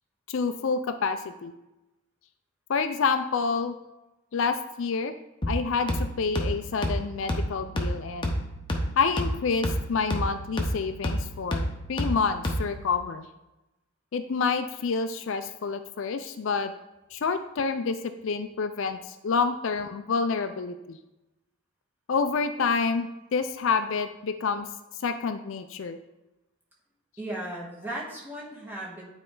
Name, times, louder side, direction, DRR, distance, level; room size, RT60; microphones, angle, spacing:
voice 1, 0.3-1.5 2.7-3.8 4.3-5.2 5.5-8.3 9.0-13.3 14.1-16.7 17.1-18.0 18.2-21.0 22.1-24.7 25.0-26.0, left 5 dB, 60° left, 9 dB, 0.4 m, -28 dB
sound 1, 5.4-12.9, equal, 20° left, 0.9 m, -30 dB
voice 2, 27.2-29.0, right 1 dB, 10° right, -4 dB, 1.5 m, -36 dB
9.2 x 4.4 x 3.8 m, 0.98 s
head